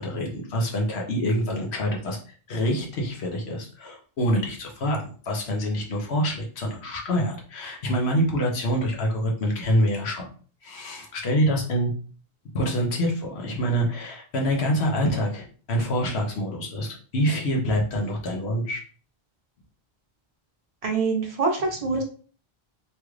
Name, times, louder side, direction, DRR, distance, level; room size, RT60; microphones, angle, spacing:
voice 1, 0.0-2.2 2.5-10.3 10.6-11.9 12.5-18.8, equal, 85° left, 0 dB, 1.1 m, -26 dB
voice 2, 20.8-22.0, right 4 dB, 40° right, 1 dB, 0.8 m, -25 dB
3.2 x 2.4 x 3.1 m, 0.41 s
omnidirectional pair, 1.1 m